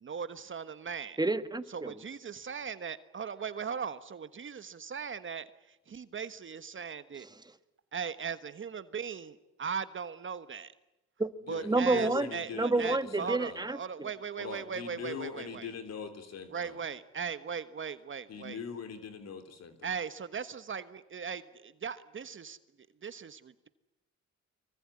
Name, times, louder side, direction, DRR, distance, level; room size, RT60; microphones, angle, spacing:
voice 1, 0.0-1.2 1.7-7.3 7.9-10.7 11.5-15.7 16.5-18.6 19.8-22.6 23.0-23.7, right 6 dB, 40° right, 12 dB, 1.4 m, -38 dB
voice 2, 1.2-2.0 11.2-11.3 11.6-14.1, right 2 dB, 15° right, 11 dB, 1.7 m, -29 dB
voice 3, 11.5-13.7 14.4-16.8 18.3-19.9, left 6 dB, 60° left, 8 dB, 3.3 m, -42 dB
24.5 x 23.0 x 9.8 m, 0.93 s
cardioid pair, 90°, 30 cm